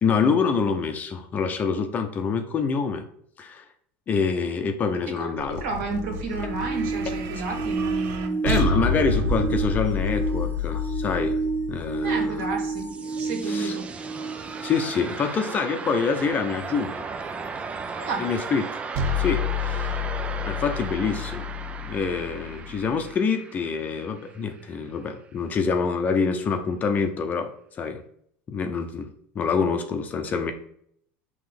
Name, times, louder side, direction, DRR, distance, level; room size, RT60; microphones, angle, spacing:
voice 1, 0.0-3.0 3.4-3.6 4.1-5.6 7.3-7.4 8.4-11.4 11.7-12.5 13.5-13.8 14.6-17.1 18.2-18.6 19.2-20.0 20.5-21.5 21.8-27.5 27.8-28.0 28.5-29.1 29.3-30.5, left 5 dB, 30° left, 6 dB, 0.7 m, -26 dB
voice 2, 5.2-8.4 12.0-13.9 17.9-18.3, right 3 dB, 75° right, 1 dB, 1.9 m, -32 dB
sound 1, 5.4-12.7 18.9-23.0, left 3 dB, 60° right, 0.8 m, -29 dB
sound 2, 5.9-15.7 18.0-18.1, right 4 dB, 40° right, 1.1 m, -31 dB
sound 3, 12.4-25.0, right 4 dB, 20° right, 0.4 m, -36 dB
5.8 x 3.1 x 5.3 m, 0.66 s
supercardioid pair, 125°, 5 cm